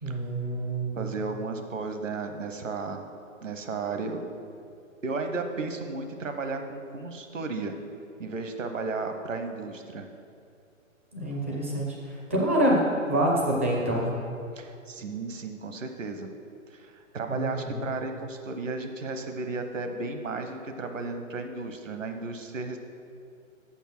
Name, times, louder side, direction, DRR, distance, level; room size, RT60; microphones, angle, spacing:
voice 1, 0.0-1.0 11.1-14.1 17.3-17.8, right 1 dB, 10° right, -2 dB, 0.4 m, -26 dB
voice 2, 1.0-3.0 3.4-4.2 5.0-7.8 8.2-10.1 14.6-16.3 16.7-22.8, right 3 dB, 70° right, 6 dB, 1.0 m, -34 dB
7.2 x 6.6 x 6.0 m, 2.5 s
figure-of-eight pair, 130°, 40 cm